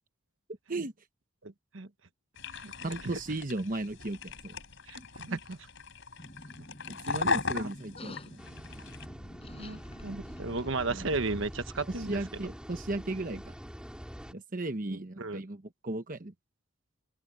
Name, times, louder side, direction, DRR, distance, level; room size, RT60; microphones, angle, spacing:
voice 1, 1.4-1.9 2.5-2.7 3.0-3.1 4.9-5.6 7.5-7.7 9.6-12.2 14.9-15.4, right 3 dB, 60° right, 1.2 m, -35 dB
sound 1, 2.4-9.0, left 4 dB, 60° left, 4.7 m, -37 dB
voice 2, 2.8-4.6 5.3-5.4 6.9-8.4 10.9-11.1 11.9-13.5 14.3-16.3, right 2 dB, 40° right, 1.0 m, -36 dB
sound 2, 6.2-11.2, left 1 dB, 25° left, 5.5 m, -49 dB
sound 3, 8.4-14.3, equal, 5° right, 3.7 m, -45 dB
open air
head